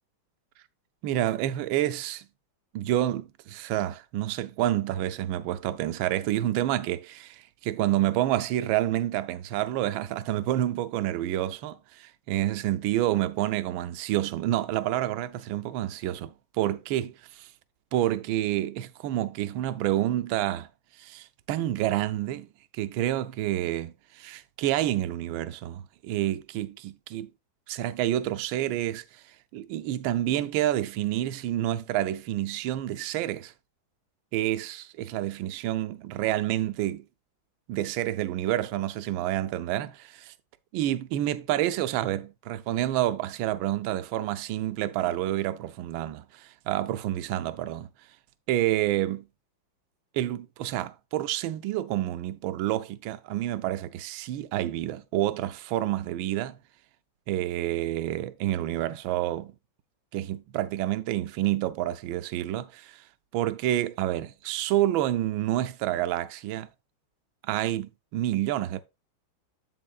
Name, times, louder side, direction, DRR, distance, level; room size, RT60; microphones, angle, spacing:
voice 1, 1.0-2.3 2.7-17.1 17.9-20.7 21.0-22.5 22.7-27.3 27.7-29.2 29.5-33.5 34.3-37.0 37.7-40.3 40.7-47.9 48.5-49.2 50.1-56.6 57.3-59.5 60.1-63.0 63.3-66.7 67.4-68.8, right 13 dB, 85° right, 1.4 m, -28 dB
7.7 x 7.4 x 2.3 m
omnidirectional pair, 2.2 m